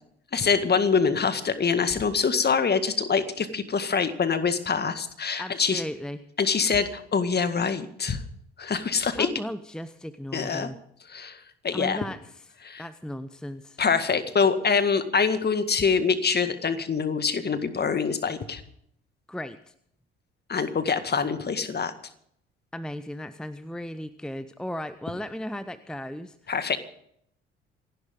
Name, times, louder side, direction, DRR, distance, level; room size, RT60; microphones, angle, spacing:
voice 1, 0.3-5.8 6.4-8.2 8.6-9.3 10.3-10.7 11.1-12.0 12.6-12.8 13.8-18.6 20.5-21.9 26.5-26.8, left 5 dB, 35° left, 11 dB, 1.9 m, -25 dB
voice 2, 5.4-6.2 9.2-10.8 11.7-12.4 12.8-13.8 19.3-19.7 22.7-26.5, equal, ahead, 14 dB, 0.9 m, -36 dB
27.5 x 12.0 x 3.8 m, 0.69 s
figure-of-eight pair, 50°, 30 cm